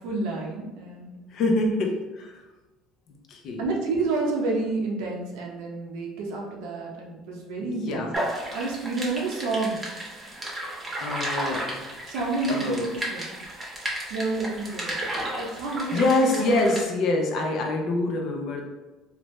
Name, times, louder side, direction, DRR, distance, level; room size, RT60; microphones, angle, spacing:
voice 1, 0.0-1.1 1.5-1.7 3.6-8.1 8.5-9.8 12.1-13.3 14.1-15.0 15.3-16.4, right 3 dB, 85° right, -1 dB, 0.7 m, -29 dB
voice 2, 1.3-2.4 3.3-3.6 7.6-8.1 10.5-11.8 12.5-12.8 15.9-18.6, left 2 dB, 55° left, 2 dB, 0.6 m, -26 dB
sound 1, 8.1-16.8, right 1 dB, 20° right, 0.8 m, -33 dB
3.3 x 2.1 x 3.1 m, 1.1 s
cardioid pair, 120°, 0 cm